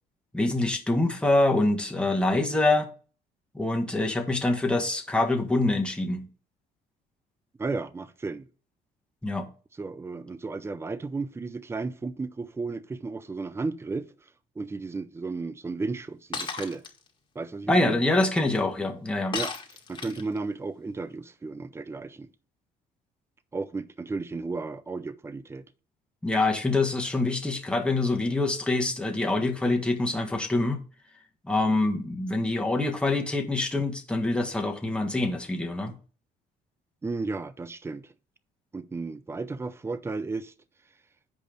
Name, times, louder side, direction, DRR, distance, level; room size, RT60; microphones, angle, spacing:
voice 1, 0.3-2.9 3.5-6.3 9.2-9.5 17.7-19.4 26.2-30.8 31.4-35.9, left 2 dB, 5° left, 1.6 m, -25 dB
voice 2, 7.6-8.5 9.8-14.1 14.6-16.8 17.3-18.0 19.3-19.5 19.9-22.3 23.5-25.7 37.0-38.1 38.7-40.5, right 3 dB, 15° right, 0.6 m, -34 dB
Shatter, 16.3-16.9 19.3-20.4, left 5 dB, 25° left, 1.9 m, -33 dB
8.4 x 5.2 x 5.2 m
cardioid pair, 110°, 17 cm